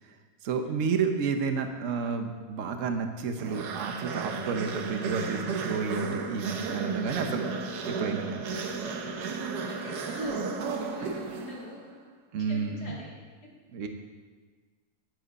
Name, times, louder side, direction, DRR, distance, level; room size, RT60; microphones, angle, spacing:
voice 1, 0.4-7.5 7.8-8.5 12.3-13.0 13.7-13.9, right 5 dB, 55° right, 6 dB, 1.2 m, -31 dB
sound 1, 3.4-11.8, right 4 dB, 80° right, 1.5 m, -34 dB
voice 2, 8.3-12.0 12.5-13.1, left 1 dB, 75° left, -5 dB, 3.3 m, -46 dB
15.5 x 7.7 x 4.1 m, 1.4 s
omnidirectional pair, 1.7 m